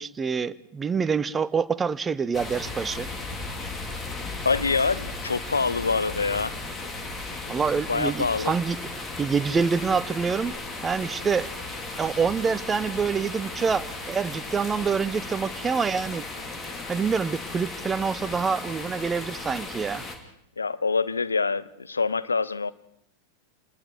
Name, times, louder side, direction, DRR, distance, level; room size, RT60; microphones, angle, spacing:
voice 1, 0.0-3.1 7.5-8.8 9.2-10.5 10.8-11.5 12.0-16.2 16.9-20.0, right 5 dB, 15° right, 0.7 m, -26 dB
sound 1, 2.3-20.2, left 3 dB, 20° left, 3.2 m, -36 dB
voice 2, 4.4-6.5 7.9-8.5 20.6-22.7, left 4 dB, 75° left, 0.8 m, -25 dB
27.5 x 21.0 x 4.9 m
figure-of-eight pair, 90°, 0 cm